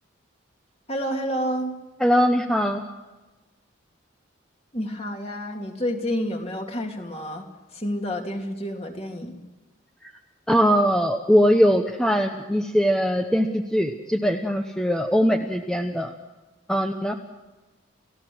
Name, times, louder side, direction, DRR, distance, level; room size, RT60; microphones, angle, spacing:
voice 1, 0.9-1.7 4.7-7.5 7.7-9.4, equal, 30° left, 2 dB, 2.7 m, -29 dB
voice 2, 2.0-2.8 10.5-16.1 16.7-17.1, equal, 5° left, 4 dB, 0.9 m, -21 dB
30.0 x 16.0 x 6.3 m, 1.1 s
head